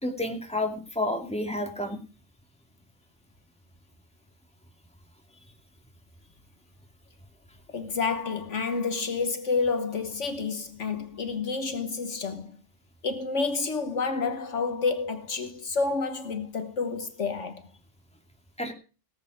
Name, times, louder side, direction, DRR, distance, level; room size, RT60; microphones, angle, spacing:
voice 1, 0.0-2.0 18.6-18.7, left 1 dB, 5° left, 2.6 m, -30 dB
voice 2, 7.7-12.6 13.0-17.7, left 4 dB, 65° left, 1.6 m, -29 dB
18.0 x 8.2 x 5.0 m
omnidirectional pair, 1.3 m